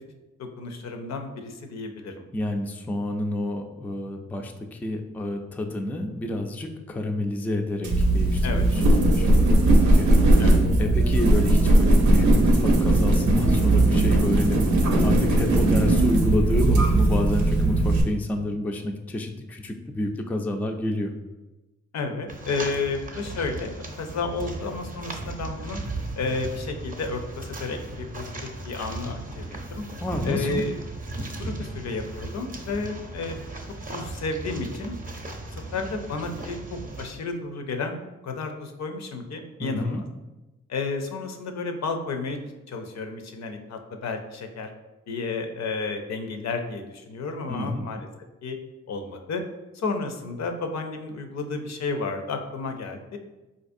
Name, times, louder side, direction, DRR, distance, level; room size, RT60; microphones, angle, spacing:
voice 1, 0.4-2.2 8.4-8.7 10.4-10.6 21.9-25.8 26.2-29.8 30.2-30.8 31.4-33.4 33.9-35.0 35.5-40.0 40.7-42.4 42.7-44.7 45.1-48.1 48.4-48.6 48.9-49.4 49.7-53.2, left 3 dB, 65° left, 5 dB, 0.5 m, -32 dB
voice 2, 2.3-9.5 9.8-10.5 10.8-21.1 30.0-30.6 39.6-40.0 47.5-47.8, left 1 dB, 5° left, 3 dB, 0.3 m, -29 dB
sound 1, 7.8-18.0, right 1 dB, 80° right, 0.6 m, -19 dB
sound 2, 22.3-37.1, right 2 dB, 30° right, 0.6 m, -36 dB
3.9 x 2.5 x 2.5 m, 1.1 s
cardioid pair, 55°, 29 cm